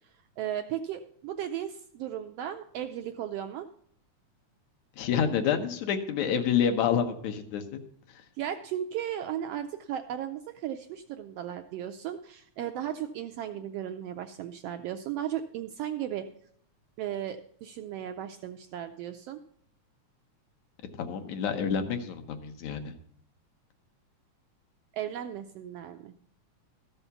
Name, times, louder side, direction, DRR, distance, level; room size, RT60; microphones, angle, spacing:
voice 1, 0.4-3.7 8.4-16.3 17.0-19.4 24.9-26.1, right 10 dB, 80° right, 7 dB, 1.4 m, -35 dB
voice 2, 5.0-7.8 8.1-8.2 21.0-22.9, left 7 dB, 75° left, 6 dB, 2.2 m, -28 dB
13.5 x 5.6 x 6.9 m, 0.64 s
omnidirectional pair, 3.3 m